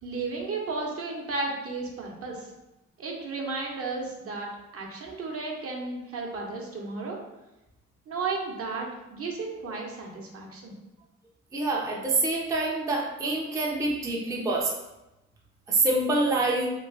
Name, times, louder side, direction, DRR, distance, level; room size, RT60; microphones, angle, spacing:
voice 1, 0.0-2.5 3.0-7.2 8.1-10.7, right 3 dB, 50° right, 0 dB, 0.7 m, -34 dB
voice 2, 11.5-14.7 15.7-16.7, right 2 dB, 10° right, -2 dB, 0.4 m, -26 dB
3.0 x 2.6 x 2.5 m, 0.96 s
cardioid pair, 90°, 30 cm